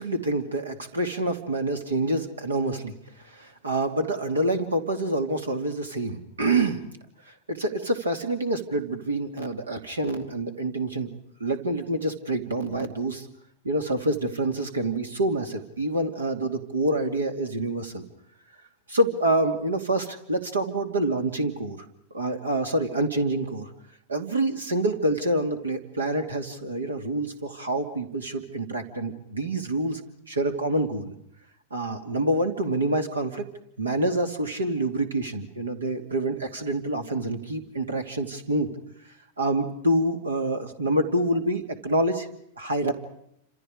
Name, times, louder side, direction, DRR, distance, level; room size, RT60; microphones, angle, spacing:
voice 1, 0.0-2.9 3.2-6.8 7.3-11.1 11.4-13.3 13.6-18.1 18.9-21.8 22.1-23.7 24.1-30.0 30.3-31.1 31.7-33.4 33.8-38.7 39.4-42.3 42.6-42.9, right 1 dB, 85° right, 6 dB, 2.6 m, -27 dB
28.5 x 27.0 x 5.0 m, 0.74 s
figure-of-eight pair, 95°, 0 cm